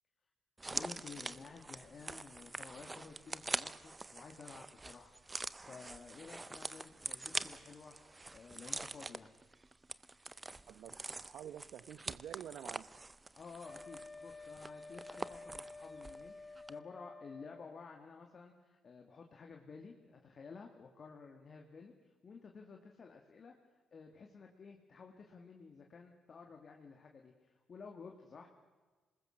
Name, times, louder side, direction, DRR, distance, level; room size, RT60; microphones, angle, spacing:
sound 1, 0.6-16.3 16.6-16.7, right 2 dB, 20° right, 0.7 m, -45 dB
voice 1, 0.7-9.3 13.3-23.5 23.9-28.5, left 5 dB, 45° left, 2.2 m, -53 dB
voice 2, 10.7-12.9, right 10 dB, 75° right, 0.9 m, -49 dB
Wind instrument woodwind instrument, 13.6-17.9, left 3 dB, 20° left, 1.1 m, -51 dB
26.5 x 20.5 x 6.6 m
cardioid pair, 90°, 0 cm